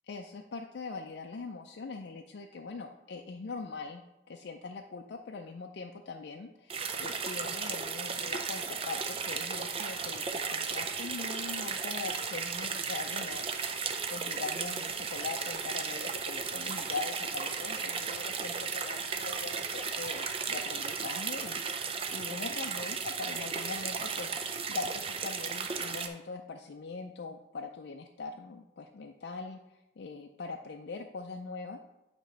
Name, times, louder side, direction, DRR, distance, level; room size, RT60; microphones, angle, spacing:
voice 1, 0.1-31.8, left 4 dB, 65° left, 3 dB, 0.4 m, -42 dB
sound 1, 6.7-26.1, right 5 dB, 30° right, 0.5 m, -35 dB
8.9 x 3.0 x 5.5 m, 0.94 s
head